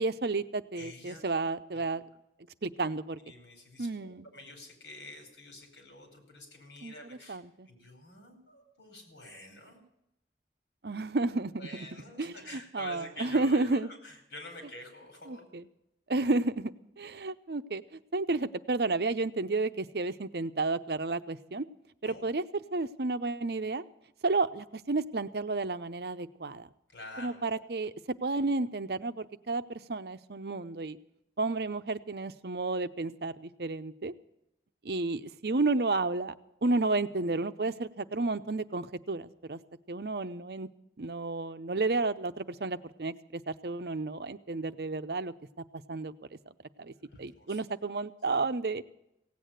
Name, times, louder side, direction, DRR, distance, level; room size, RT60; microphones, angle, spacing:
voice 1, 0.0-2.0 2.6-3.2 3.8-4.3 6.8-7.7 10.8-13.9 15.3-15.7 16.1-21.7 22.0-22.4 22.7-23.8 24.2-26.7 27.2-27.9 28.2-31.0 31.4-34.1 34.8-36.3 36.6-39.6 39.9-40.7 41.0-45.3 45.7-46.1 46.8-46.9 47.2-48.8, right 3 dB, 60° right, 11 dB, 0.7 m, -32 dB
voice 2, 0.7-1.2 1.7-1.9 3.2-7.4 7.7-9.8 11.6-15.5 22.0-22.2 26.9-27.5 47.1-47.6, left 1 dB, 80° left, 4 dB, 5.0 m, -48 dB
17.0 x 8.5 x 9.1 m, 0.84 s
head